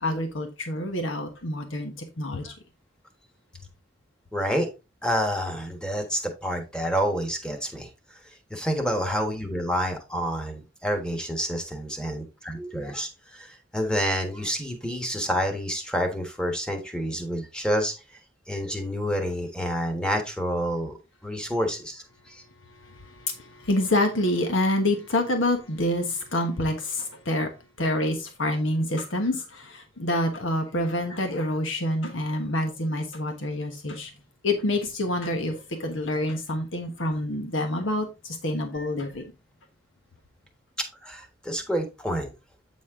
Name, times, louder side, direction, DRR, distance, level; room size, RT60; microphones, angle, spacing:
voice 1, 0.0-2.5 23.6-27.5 27.8-34.1 34.4-39.2, left 1 dB, 85° left, 1.3 m, -27 dB
voice 2, 4.3-4.7 5.0-7.9 8.5-17.9 18.5-22.4 38.7-38.9 41.0-42.3, equal, 5° left, 1.3 m, -28 dB
8.5 x 4.2 x 3.6 m
head